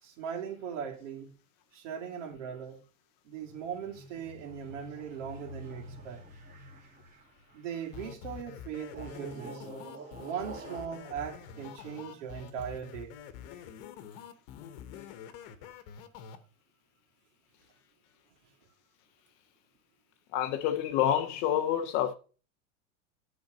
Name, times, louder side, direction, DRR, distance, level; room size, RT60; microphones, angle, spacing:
voice 1, 0.0-1.3 1.7-2.8 3.2-6.2 7.5-9.7 10.2-13.1, right 8 dB, 75° right, 2.5 m, -39 dB
sound 1, 3.4-8.1 8.9-12.5, right 2 dB, 20° right, 2.3 m, -48 dB
sound 2, 7.9-16.4, left 9 dB, 50° left, 1.0 m, -46 dB
voice 2, 20.3-22.1, left 10 dB, 30° left, 0.4 m, -28 dB
10.5 x 4.0 x 5.1 m
supercardioid pair, 175°, 37 cm